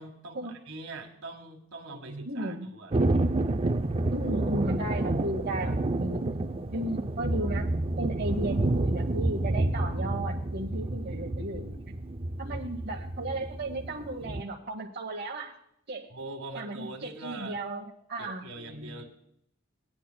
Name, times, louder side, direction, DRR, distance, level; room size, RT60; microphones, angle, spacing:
voice 1, 0.0-2.9 12.4-12.6 16.1-17.6 18.2-19.0, right 3 dB, 80° right, 3 dB, 1.5 m, -43 dB
voice 2, 2.1-2.7 4.1-7.7 8.0-11.8 12.4-15.6 15.9-16.1 16.5-19.0, right 1 dB, 50° right, -1 dB, 0.9 m, -35 dB
Thunder, 2.9-14.4, right 2 dB, 30° right, 0.4 m, -29 dB
18.0 x 9.9 x 2.2 m, 0.74 s
head